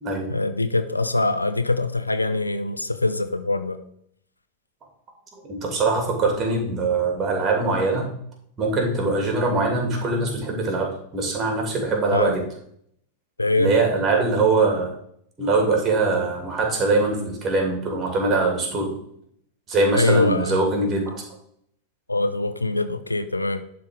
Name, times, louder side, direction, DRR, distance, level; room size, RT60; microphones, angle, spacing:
voice 1, 0.3-3.8 12.1-12.3 13.4-13.7 19.9-20.6 22.1-23.6, left 2 dB, 85° left, 10 dB, 0.5 m, -23 dB
voice 2, 5.5-8.1 8.6-12.4 13.6-14.9 15.4-18.9 19.7-21.2, right 3 dB, 20° right, 1 dB, 2.5 m, -22 dB
11.5 x 3.8 x 3.7 m, 0.68 s
figure-of-eight pair, 90°, 0 cm